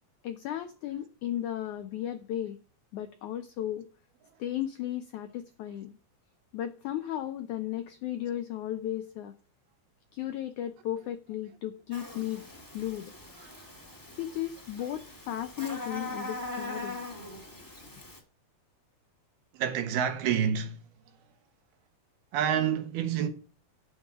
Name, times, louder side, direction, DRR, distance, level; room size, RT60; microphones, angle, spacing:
voice 1, 0.2-2.6 2.9-3.9 4.4-5.9 6.5-9.3 10.1-12.4 12.7-13.1 14.2-17.0, left 12 dB, 90° left, 1.7 m, -35 dB
Buzz, 11.9-18.2, left 2 dB, 20° left, 0.5 m, -41 dB
voice 2, 13.4-13.9 19.5-20.8 22.3-23.3, right 8 dB, 80° right, 3.4 m, -29 dB
9.5 x 8.2 x 4.9 m
omnidirectional pair, 4.5 m